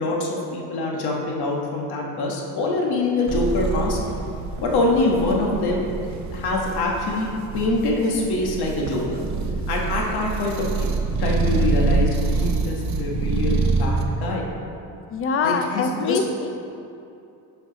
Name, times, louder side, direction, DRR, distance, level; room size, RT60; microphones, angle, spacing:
voice 1, 0.0-4.0 4.6-7.3 7.5-9.2 9.7-10.9 11.2-14.5 15.4-16.2, left 2 dB, 70° left, -1 dB, 1.4 m, -24 dB
sound 1, 3.3-14.0, right 3 dB, 45° right, 0.7 m, -26 dB
voice 2, 15.1-16.5, left 5 dB, 35° left, 7 dB, 0.4 m, -24 dB
11.0 x 4.7 x 3.9 m, 2.6 s
cardioid pair, 170°, 40 cm